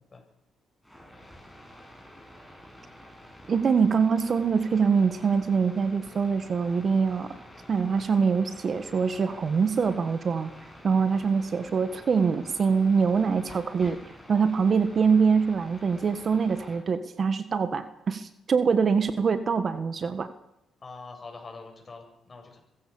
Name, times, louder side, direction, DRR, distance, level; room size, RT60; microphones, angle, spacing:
sound 1, 0.8-16.8, equal, ahead, 7.9 m, -49 dB
voice 1, 3.5-7.3 7.7-10.5 10.8-14.0 14.3-20.3, right 5 dB, 45° right, 11 dB, 1.6 m, -24 dB
voice 2, 20.8-22.6, left 4 dB, 30° left, 3 dB, 7.8 m, -44 dB
24.5 x 15.5 x 7.2 m, 0.81 s
cardioid pair, 90°, 0 cm